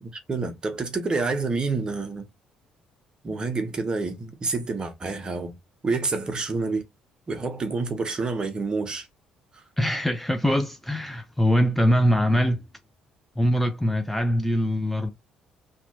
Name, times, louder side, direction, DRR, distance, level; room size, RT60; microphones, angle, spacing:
voice 1, 0.0-2.3 3.2-5.5 5.8-6.9 7.3-9.1 9.5-9.6, right 3 dB, 30° right, 0.8 m, -28 dB
voice 2, 9.8-12.6 13.4-15.1, equal, 5° left, 0.4 m, -22 dB
2.8 x 2.5 x 2.8 m
figure-of-eight pair, 50°, 3 cm